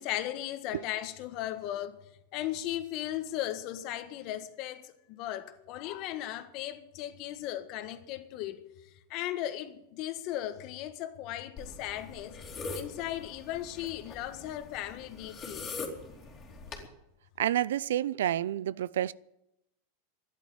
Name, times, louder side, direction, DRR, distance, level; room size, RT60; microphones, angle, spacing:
voice 1, 0.0-2.0 2.3-8.7 9.1-12.4 12.7-15.6, left 13 dB, 45° left, 1.5 m, -37 dB
sound 1, 11.6-16.9, left 3 dB, 25° left, 3.0 m, -43 dB
voice 2, 17.4-19.1, right 12 dB, 90° right, 0.5 m, -29 dB
12.5 x 11.0 x 8.8 m
supercardioid pair, 150°, 0 cm